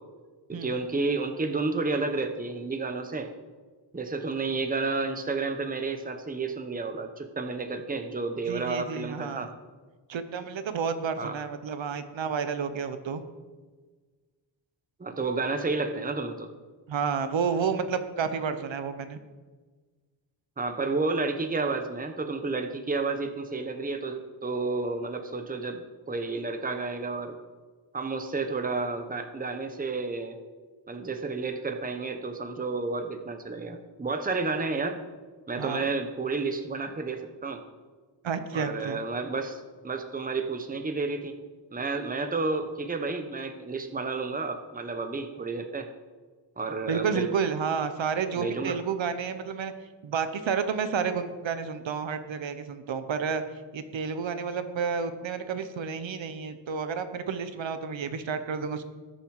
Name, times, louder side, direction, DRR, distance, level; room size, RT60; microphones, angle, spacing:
voice 1, 0.5-3.3 3.9-9.5 11.2-11.3 15.0-16.5 20.6-27.4 27.9-30.4 30.9-35.0 35.5-37.6 38.5-41.4 41.7-45.9 46.6-47.3 48.4-48.8, right 3 dB, 20° right, 6 dB, 0.9 m, -31 dB
voice 2, 8.5-9.5 10.1-13.2 16.9-19.2 35.6-35.8 38.2-39.0 46.9-49.7 50.0-53.4 53.7-58.8, right 6 dB, 75° right, 10 dB, 1.1 m, -30 dB
19.5 x 7.0 x 4.8 m, 1.4 s
wide cardioid pair, 150°, 46 cm